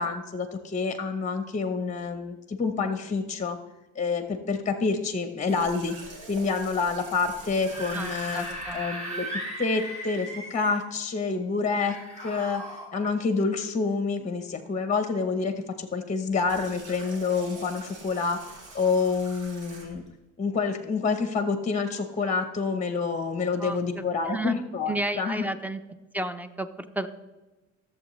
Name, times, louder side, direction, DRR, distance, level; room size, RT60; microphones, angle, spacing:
voice 1, 0.0-3.6 3.9-5.9 6.3-8.4 8.7-9.3 9.6-12.6 12.9-18.4 18.7-20.0 20.4-25.5, left 4 dB, 25° left, 8 dB, 0.9 m, -28 dB
Water tap faucet, 5.5-8.9 16.3-20.1, right 3 dB, 80° right, 2.0 m, -45 dB
Screaming / Screech, 7.4-10.8 11.8-12.9, right 1 dB, 25° right, 2.5 m, -37 dB
voice 2, 7.9-8.8 23.6-24.6 24.9-25.8 26.1-27.1, right 1 dB, 5° right, 11 dB, 0.6 m, -32 dB
14.5 x 7.2 x 3.1 m, 1.1 s
cardioid pair, 90°, 30 cm